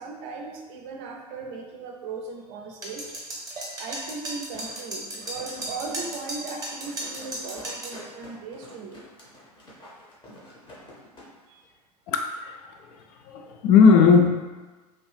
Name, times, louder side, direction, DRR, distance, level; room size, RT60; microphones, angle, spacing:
voice 1, 0.0-3.2 3.8-9.0 11.5-11.6, right 4 dB, 45° right, 2 dB, 0.5 m, -38 dB
sound 1, 2.8-8.0, right 1 dB, 15° right, 1.0 m, -35 dB
sound 2, 4.5-11.3 11.6-11.7, equal, 20° left, 1.0 m, -47 dB
voice 2, 12.1-12.6 12.9-14.3, left 5 dB, 40° left, 4 dB, 0.4 m, -18 dB
2.8 x 2.5 x 3.3 m, 1.2 s
figure-of-eight pair, 85°, 21 cm